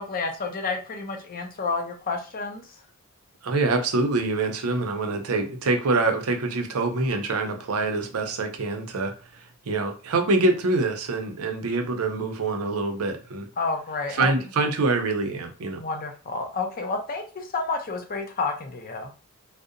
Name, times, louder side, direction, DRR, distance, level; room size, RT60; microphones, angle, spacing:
voice 1, 0.0-2.7 13.6-14.3 15.8-19.1, left 4 dB, 40° left, 5 dB, 0.5 m, -30 dB
voice 2, 3.4-13.5 14.1-15.8, right 3 dB, 90° right, 5 dB, 0.5 m, -25 dB
2.7 x 2.0 x 2.5 m, 0.35 s
head